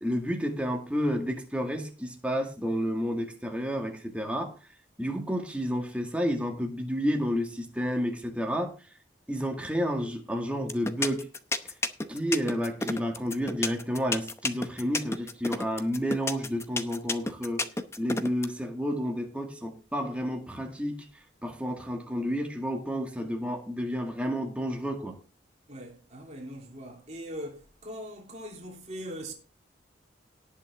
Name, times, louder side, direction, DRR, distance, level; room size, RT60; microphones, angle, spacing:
voice 1, 0.0-4.5 5.0-8.7 9.3-11.2 11.6-11.7 12.1-17.6 18.0-21.0 21.4-25.2, equal, 5° right, 2.0 m, -30 dB
sound 1, 10.7-18.5, left 2 dB, 15° left, 0.8 m, -30 dB
voice 2, 25.7-29.3, equal, 35° right, 3.0 m, -41 dB
18.5 x 6.6 x 3.6 m
head